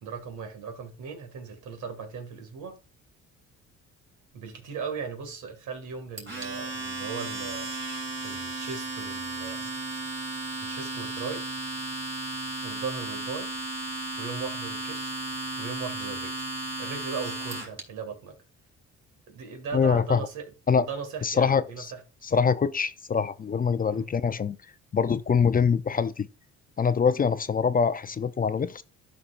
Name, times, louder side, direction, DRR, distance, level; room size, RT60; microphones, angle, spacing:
voice 1, 0.0-2.8 4.3-7.7 8.2-9.7 10.6-11.5 12.6-13.5 14.2-15.2 15.6-16.5 16.8-18.4 19.3-20.5 20.8-22.0 23.7-24.1, right 5 dB, 80° right, 2.1 m, -38 dB
Domestic sounds home sounds, 6.2-17.8, right 2 dB, 40° right, 3.1 m, -34 dB
voice 2, 19.7-20.2 20.7-20.9 21.2-21.6 22.3-24.6 24.9-26.3 26.8-28.8, left 6 dB, 30° left, 0.5 m, -24 dB
12.5 x 5.4 x 2.5 m
cardioid pair, 90°, 30 cm